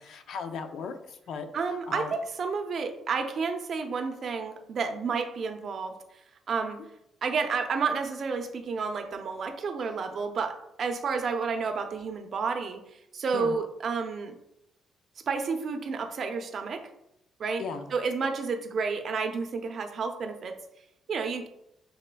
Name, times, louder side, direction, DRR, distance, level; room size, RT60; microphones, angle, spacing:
voice 1, 0.0-2.1 13.3-13.6 17.6-17.9, left 5 dB, 75° left, 7 dB, 0.5 m, -37 dB
voice 2, 1.5-6.0 6.5-6.8 7.2-12.8 13.1-14.3 15.3-16.9 17.4-17.6 17.9-20.6 21.1-21.5, right 5 dB, 55° right, 6 dB, 0.6 m, -30 dB
5.5 x 4.1 x 2.2 m, 0.81 s
cardioid pair, 90°, 0 cm